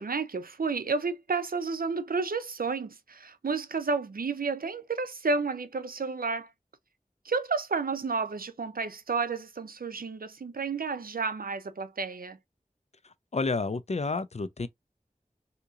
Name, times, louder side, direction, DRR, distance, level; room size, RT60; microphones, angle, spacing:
voice 1, 0.0-6.5 7.2-12.4, right 4 dB, 80° right, 0.5 m, -31 dB
voice 2, 13.0-14.7, left 3 dB, 50° left, 0.4 m, -30 dB
3.7 x 2.8 x 2.4 m
wide cardioid pair, 45°, 15 cm